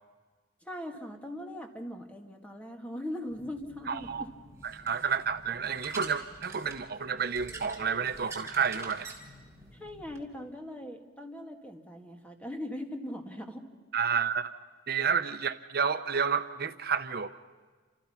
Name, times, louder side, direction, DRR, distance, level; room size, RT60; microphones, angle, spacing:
voice 1, 0.6-4.3 9.7-13.6, left 1 dB, 10° left, 3 dB, 2.1 m, -40 dB
sound 1, 3.3-10.2, right 2 dB, 15° right, 3.9 m, -47 dB
voice 2, 3.9-4.2 4.7-9.1 13.9-14.5 14.9-17.3, right 6 dB, 55° right, 10 dB, 0.7 m, -30 dB
29.0 x 27.0 x 5.8 m, 1.5 s
head